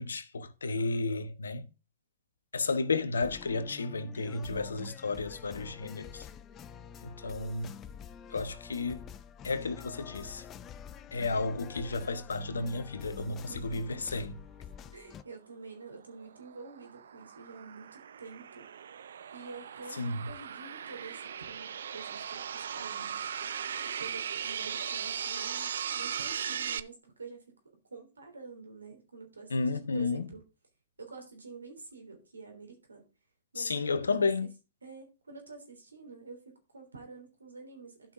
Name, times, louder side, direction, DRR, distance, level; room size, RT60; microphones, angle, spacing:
voice 1, 0.0-1.7 2.5-6.3 7.0-7.7 8.3-9.0 9.4-10.4 11.1-14.3 20.0-20.2 29.5-30.2 33.6-34.5, left 3 dB, 80° left, 1.0 m, -32 dB
sound 1, 3.2-15.2, left 8 dB, 25° left, 0.5 m, -47 dB
voice 2, 13.5-14.1 14.9-18.6 19.3-23.3 23.8-27.5 27.9-30.4 31.0-33.0 33.5-34.5 34.8-38.1, right 4 dB, 85° right, 3.4 m, -48 dB
sound 2, 16.0-26.8, right 8 dB, 70° right, 0.5 m, -38 dB
11.5 x 5.8 x 3.7 m
hypercardioid pair, 115°, 0 cm